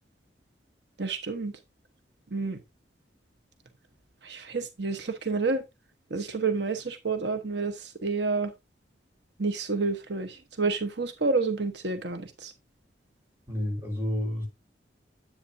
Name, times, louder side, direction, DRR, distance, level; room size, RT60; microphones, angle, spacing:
voice 1, 1.0-1.5 2.3-2.6 4.2-5.6 6.1-8.5 9.4-12.5, right 4 dB, 70° right, 1.1 m, -29 dB
voice 2, 13.5-14.5, left 1 dB, 15° right, 4.4 m, -30 dB
10.0 x 8.7 x 2.7 m
head